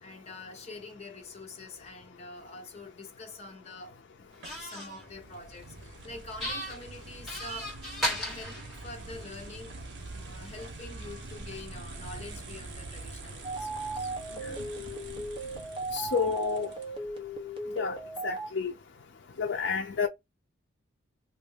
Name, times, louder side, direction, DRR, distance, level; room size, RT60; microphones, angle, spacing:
voice 1, 0.0-9.8 10.1-14.1, left 2 dB, 35° left, 0.9 m, -46 dB
sound 1, 4.4-5.0 6.4-9.4, equal, ahead, 1.5 m, -35 dB
sound 2, 4.4-17.1, right 3 dB, 60° right, 0.7 m, -45 dB
sound 3, 13.4-18.5, right 2 dB, 25° right, 0.8 m, -37 dB
voice 2, 15.9-16.7 17.8-18.0 18.2-18.7 19.4-20.1, left 5 dB, 65° left, 0.5 m, -29 dB
2.7 x 2.6 x 3.2 m
head